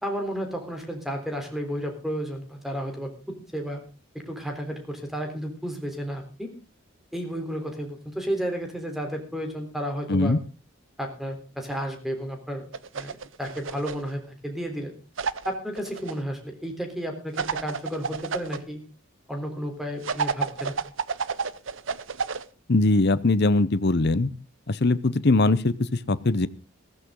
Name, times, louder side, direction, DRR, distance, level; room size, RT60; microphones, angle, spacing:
voice 1, 0.0-3.8 4.1-6.5 7.1-10.4 11.0-12.6 12.9-15.0 15.5-18.8 19.3-20.7, equal, ahead, 4 dB, 3.6 m, -32 dB
voice 2, 10.1-10.4 22.7-24.3 24.7-26.5, left 2 dB, 50° left, 16 dB, 0.8 m, -21 dB
sound 1, 12.7-14.1 15.2-16.1 17.4-18.6 20.0-22.5, right 5 dB, 65° right, 0.8 m, -30 dB
15.5 x 14.5 x 3.8 m, 0.33 s
head